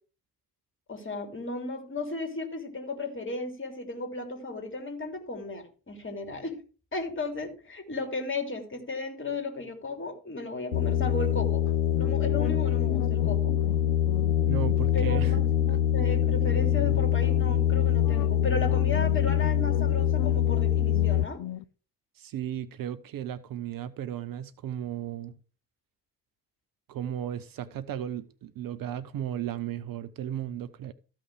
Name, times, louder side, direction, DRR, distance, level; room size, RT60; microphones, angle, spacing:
voice 1, 0.9-6.6 6.9-13.5 14.9-21.4, left 2 dB, 25° left, 3.4 m, -35 dB
sound 1, 10.7-21.3, left 11 dB, 90° left, 0.6 m, -24 dB
sound 2, 11.9-21.6, left 15 dB, 50° left, 0.7 m, -39 dB
voice 2, 14.4-15.4 15.7-15.8 22.1-25.4 26.9-30.9, right 10 dB, 45° right, 0.7 m, -35 dB
14.0 x 5.9 x 4.9 m
figure-of-eight pair, 45°, 48 cm